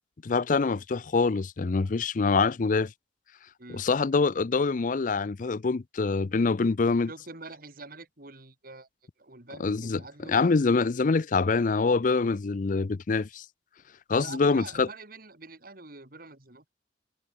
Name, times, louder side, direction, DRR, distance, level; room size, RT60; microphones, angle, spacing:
voice 1, 0.2-2.9 3.7-7.1 9.6-13.4 14.1-14.9, left 4 dB, 45° left, 0.5 m, -25 dB
voice 2, 7.1-8.9 9.2-10.3 14.1-16.7, right 3 dB, 55° right, 3.5 m, -45 dB
head